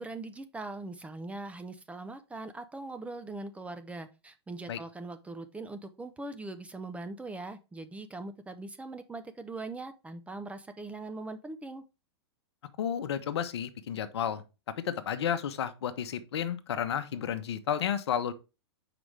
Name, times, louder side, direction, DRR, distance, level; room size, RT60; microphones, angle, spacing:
voice 1, 0.0-11.8, right 2 dB, 10° right, 0.5 m, -41 dB
voice 2, 12.8-14.4 14.8-18.3, left 8 dB, 70° left, 0.8 m, -32 dB
6.0 x 5.0 x 3.3 m
hypercardioid pair, 115°, 14 cm